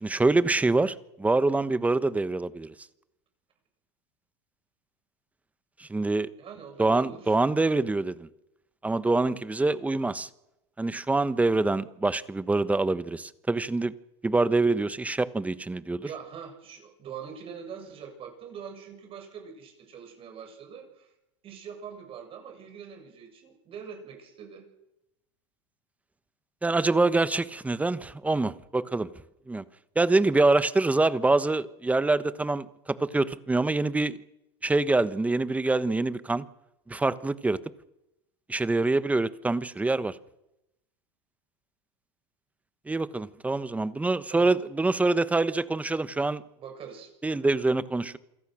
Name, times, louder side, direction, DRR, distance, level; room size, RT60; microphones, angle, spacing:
voice 1, 0.0-2.7 5.8-6.3 6.8-8.3 8.8-10.3 10.8-13.9 14.2-16.1 26.6-29.1 29.5-29.6 29.9-34.2 34.6-36.4 36.9-37.6 38.5-40.2 42.9-46.4 47.2-48.2, right 2 dB, 10° right, 1.2 m, -25 dB
voice 2, 6.4-7.4 16.0-21.1 21.4-24.7 44.3-44.5 46.6-47.1, right 7 dB, 40° right, 7.5 m, -43 dB
27.5 x 21.5 x 6.4 m
hypercardioid pair, 105°, 15 cm